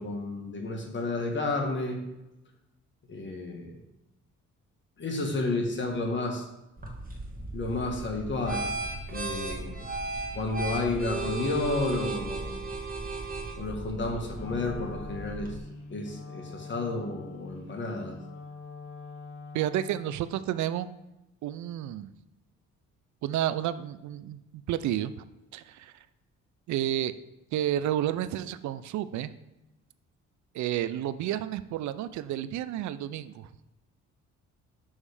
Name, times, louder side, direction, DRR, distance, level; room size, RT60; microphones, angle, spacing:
voice 1, 0.0-2.0 3.1-3.8 5.0-6.4 7.5-8.7 9.1-9.8 10.3-12.6 13.6-15.5 15.9-18.2, left 2 dB, 40° left, 2 dB, 1.4 m, -31 dB
sound 1, 6.8-15.6, right 2 dB, 30° right, 1.4 m, -36 dB
Wind instrument woodwind instrument, 14.3-20.3, left 4 dB, 75° left, 1.0 m, -44 dB
voice 2, 19.5-20.9 21.4-22.1 23.2-25.1 25.5-25.9 26.7-27.1 27.5-29.3 30.5-33.5, right 12 dB, 70° right, 14 dB, 0.5 m, -31 dB
7.1 x 3.2 x 4.8 m, 0.95 s
cardioid pair, 90°, 30 cm